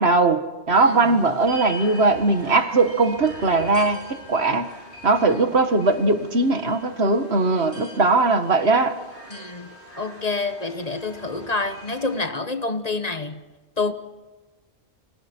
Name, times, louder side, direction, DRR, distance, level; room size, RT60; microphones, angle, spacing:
voice 1, 0.0-4.7 5.0-9.0, right 3 dB, 70° right, 2.0 m, -20 dB
sound 1, 0.7-12.2, equal, 85° left, 8.2 m, -42 dB
voice 2, 9.3-13.4 13.8-13.9, left 3 dB, 35° left, 1.4 m, -27 dB
30.0 x 25.0 x 4.5 m
omnidirectional pair, 1.1 m